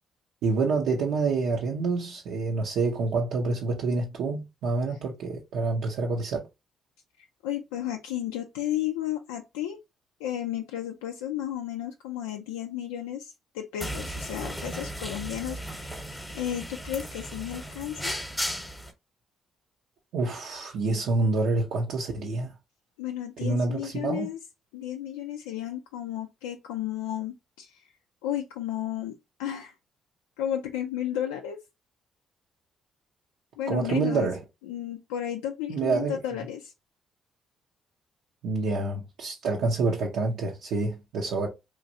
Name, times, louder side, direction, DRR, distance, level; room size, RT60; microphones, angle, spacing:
voice 1, 0.4-6.4 20.1-22.5 23.4-24.3 33.7-34.4 35.7-36.2 38.4-41.5, right 3 dB, 75° right, 0.6 m, -27 dB
voice 2, 7.2-9.8 10.2-16.0 16.3-18.2 23.0-24.4 24.7-27.8 28.2-29.1 29.4-29.7 30.4-31.6 33.6-34.3 34.7-36.7, left 11 dB, 85° left, 0.3 m, -33 dB
sound 1, 13.8-18.9, equal, 5° left, 0.9 m, -35 dB
3.1 x 2.5 x 2.6 m
hypercardioid pair, 50°, 0 cm